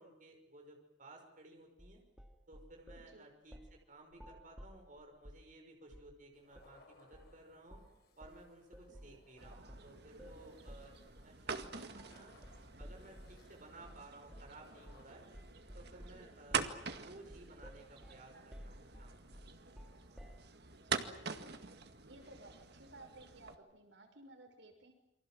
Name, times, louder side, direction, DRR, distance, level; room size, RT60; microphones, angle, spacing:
voice 1, 0.0-2.0 2.5-7.8 8.2-12.4 12.8-15.2 15.7-19.2, right 2 dB, 45° right, 2 dB, 5.7 m, -57 dB
sound 1, 1.8-3.1 3.5-3.8 4.1-5.5 5.9-6.2 6.5-6.7 7.1-7.4 7.7-13.4 13.8-14.0 14.3-14.6 14.9-15.1 15.3-20.5, equal, 5° right, 2.7 m, -54 dB
sound 2, 6.3-15.7, left 2 dB, 60° left, 6.6 m, -67 dB
voice 2, 8.9-9.2 16.1-16.3 20.7-21.6 22.0-24.9, right 2 dB, 80° right, 5 dB, 5.9 m, -58 dB
sound 3, 9.4-23.5, right 5 dB, 60° right, 2.0 m, -45 dB
29.0 x 24.0 x 7.7 m, 0.78 s
head